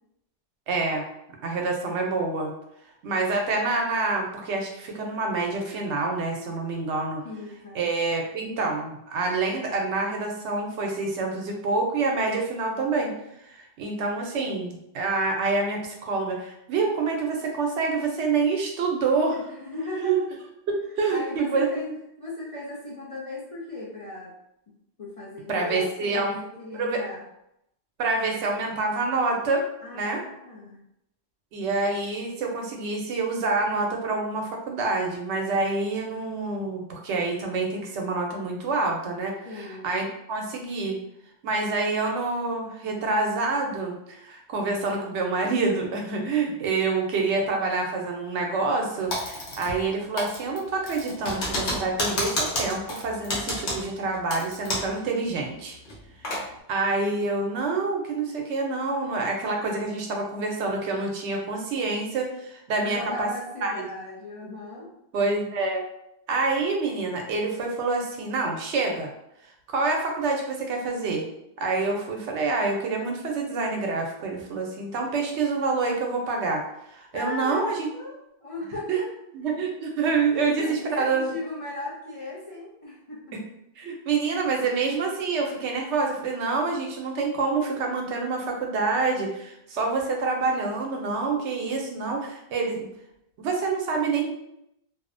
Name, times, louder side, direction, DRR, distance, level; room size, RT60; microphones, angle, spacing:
voice 1, 0.7-1.0 1.4-2.5 3.0-7.2 7.7-13.1 13.4-19.4 20.0-20.2 20.7-21.7 25.5-26.4 26.7-27.0 28.0-30.2 31.5-41.0 41.4-55.8 56.2-63.3 63.6-63.7 65.1-65.8 66.3-69.1 69.7-71.2 71.6-76.6 76.9-77.9 78.9-79.0 79.3-81.3 83.8-92.9 93.4-94.3, right 3 dB, 90° right, 1 dB, 0.9 m, -27 dB
voice 2, 7.2-7.8 19.3-20.3 21.1-21.9 22.2-24.3 25.0-27.2 29.8-30.8 39.4-39.9 62.8-64.9 77.1-79.1 80.3-83.4, left 2 dB, 50° left, -6 dB, 0.4 m, -37 dB
Typing, 49.1-49.9 50.2-55.0 55.3-55.4 55.9-56.4, left 1 dB, 80° left, 1.1 m, -30 dB
2.6 x 2.0 x 2.5 m, 0.80 s
omnidirectional pair, 1.1 m